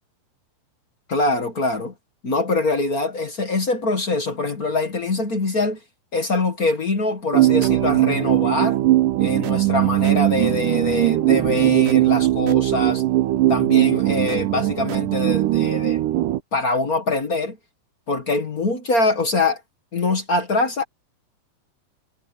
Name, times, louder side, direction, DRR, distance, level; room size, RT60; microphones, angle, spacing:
voice 1, 1.1-1.9 2.2-5.8 6.1-8.8 9.2-13.0 13.5-16.0 16.5-17.6 18.1-19.6 19.9-20.8, left 3 dB, 40° left, 1.4 m, -23 dB
sound 1, 7.3-16.4, right 15 dB, 75° right, 2.3 m, -19 dB
omnidirectional pair, 4.0 m